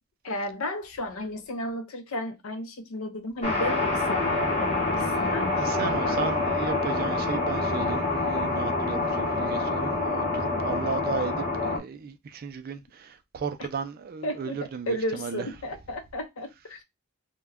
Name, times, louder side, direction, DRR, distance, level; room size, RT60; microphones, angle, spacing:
voice 1, 0.2-6.2 14.2-16.8, left 1 dB, 70° left, 0.5 m, -33 dB
sound 1, 3.4-11.8, left 2 dB, 30° left, 0.8 m, -26 dB
voice 2, 5.5-15.5, right 5 dB, 45° right, 0.3 m, -35 dB
2.2 x 2.1 x 3.4 m
head